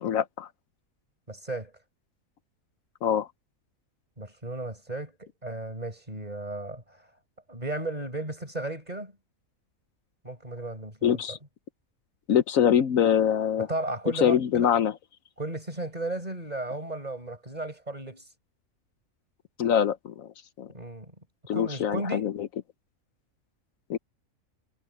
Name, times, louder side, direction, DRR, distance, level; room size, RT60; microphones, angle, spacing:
voice 1, 0.0-0.5 3.0-3.3 11.0-11.4 12.3-13.7 14.2-14.9 19.6-20.3 20.6-20.7 21.5-22.5 23.9-24.0, left 9 dB, 70° left, 1.2 m, -24 dB
voice 2, 1.3-1.7 4.2-7.0 7.5-9.1 10.2-11.4 13.6-14.7 15.4-18.3 20.7-21.2 21.5-22.3, right 2 dB, 30° right, 5.5 m, -35 dB
omnidirectional pair, 1.5 m